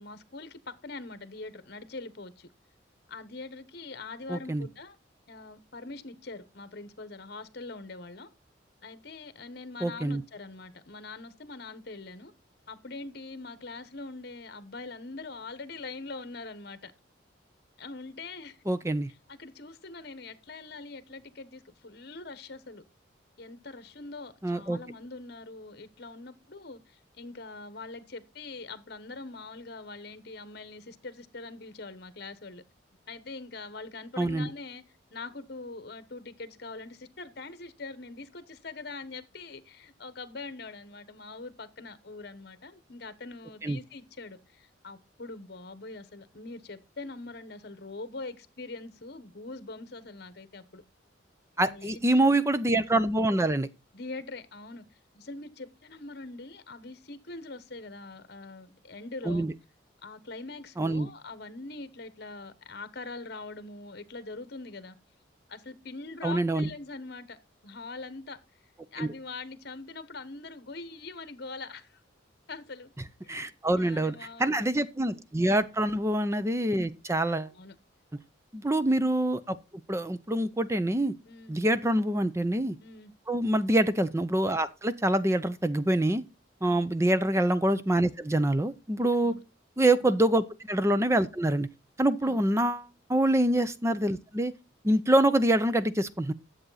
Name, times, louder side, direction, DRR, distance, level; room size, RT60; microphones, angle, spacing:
voice 1, 0.0-2.5 3.1-5.0 5.3-8.3 8.8-12.3 12.7-16.9 17.8-18.6 19.3-22.8 23.4-32.6 33.1-34.8 35.1-50.8 51.6-52.4 53.9-54.8 55.1-59.5 60.0-64.9 65.5-67.4 67.6-68.4 68.9-72.0 72.5-72.9 73.2-74.6 77.5-77.8 81.2-81.6 82.8-83.1 86.6-86.9 89.1-89.4 89.9-90.1 92.2-92.4 94.9-95.1, left 3 dB, 55° left, 1.1 m, -43 dB
voice 2, 4.3-4.7 9.8-10.2 18.7-19.1 24.4-24.8 34.2-34.5 43.6-43.8 51.6-53.7 59.3-59.5 60.8-61.1 66.2-66.7 69.0-69.1 73.3-74.1 74.4-77.5 78.5-79.6 79.9-81.1 81.5-82.8 83.3-86.2 86.6-89.3 89.8-91.7 92.0-94.5 94.8-96.3, right 1 dB, 15° right, 0.6 m, -25 dB
10.5 x 7.7 x 4.0 m
head